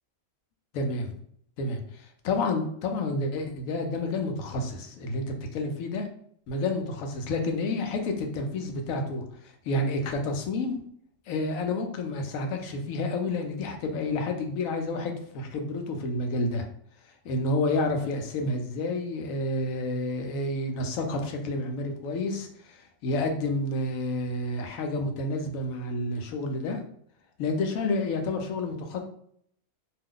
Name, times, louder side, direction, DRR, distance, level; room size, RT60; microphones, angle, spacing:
voice 1, 0.7-1.1 1.6-6.1 6.5-10.8 11.3-16.7 17.2-26.8 27.4-29.0, left 2 dB, 85° left, 4 dB, 1.0 m, -30 dB
2.6 x 2.3 x 3.6 m, 0.67 s
omnidirectional pair, 1.4 m